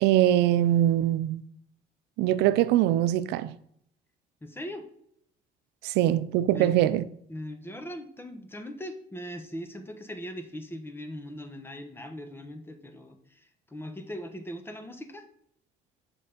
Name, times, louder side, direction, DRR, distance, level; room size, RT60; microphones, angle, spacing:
voice 1, 0.0-1.4 2.2-3.5 5.8-7.1, right 13 dB, 90° right, 0.4 m, -23 dB
voice 2, 4.4-4.8 5.8-6.0 6.5-6.8 7.3-15.3, equal, 15° left, 1.0 m, -40 dB
6.7 x 5.4 x 5.1 m
cardioid pair, 110°, 17 cm